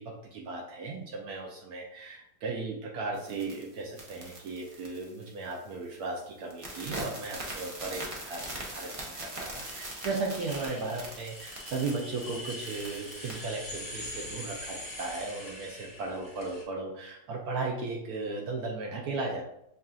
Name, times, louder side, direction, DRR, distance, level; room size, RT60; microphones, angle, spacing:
voice 1, 0.0-19.4, right 3 dB, 75° right, 0 dB, 1.1 m, -36 dB
sound 1, 3.2-5.7 5.9-6.2 6.5-13.4, right 1 dB, 55° right, 0.3 m, -41 dB
sound 2, 9.3-16.6, left 1 dB, 15° left, 1.0 m, -43 dB
5.5 x 2.5 x 2.4 m, 0.78 s
omnidirectional pair, 1.7 m